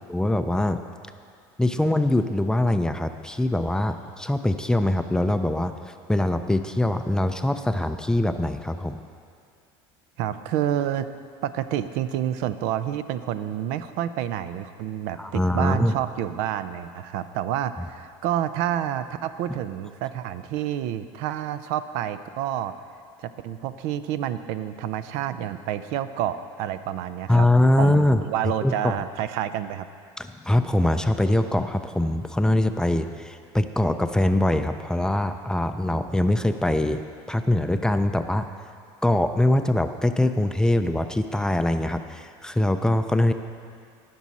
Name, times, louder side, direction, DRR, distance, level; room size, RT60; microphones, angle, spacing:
voice 1, 0.1-0.8 1.6-9.0 15.2-15.9 27.3-29.0 30.2-38.5 39.0-43.3, left 1 dB, 5° left, 8 dB, 0.4 m, -23 dB
voice 2, 10.2-11.1 11.4-22.7 23.2-27.5 27.8-29.9, right 11 dB, 75° right, 12 dB, 0.5 m, -29 dB
18.0 x 6.2 x 4.2 m, 2.3 s
supercardioid pair, 115°, 12 cm